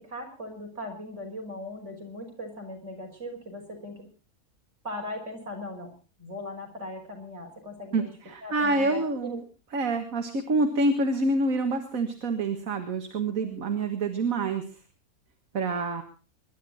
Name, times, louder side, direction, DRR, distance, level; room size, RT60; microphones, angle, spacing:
voice 1, 0.0-4.1 4.8-5.9 6.2-8.1 8.4-9.4 13.4-13.6, left 1 dB, 50° right, 1 dB, 6.0 m, -39 dB
voice 2, 7.9-9.4 9.7-14.6 15.5-16.0, right 2 dB, 65° right, 5 dB, 2.1 m, -27 dB
25.5 x 12.0 x 4.2 m, 0.35 s
omnidirectional pair, 1.5 m